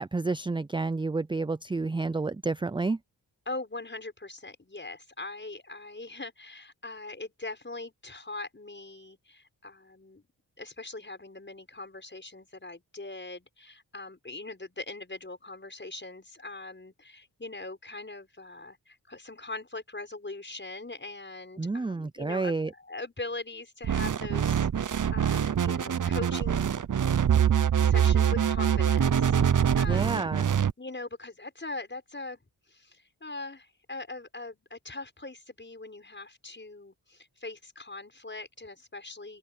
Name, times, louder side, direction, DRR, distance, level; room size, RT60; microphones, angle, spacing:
voice 1, 0.0-3.0 21.6-22.7 29.9-30.5, right 3 dB, 10° right, 0.5 m, -30 dB
voice 2, 3.4-10.3 10.6-26.8 27.8-29.4 29.8-30.4 30.8-32.4 32.7-39.4, left 2 dB, 25° left, 6.6 m, -41 dB
sound 1, 23.8-30.7, right 8 dB, 50° right, 0.8 m, -24 dB
open air
cardioid pair, 75°, 41 cm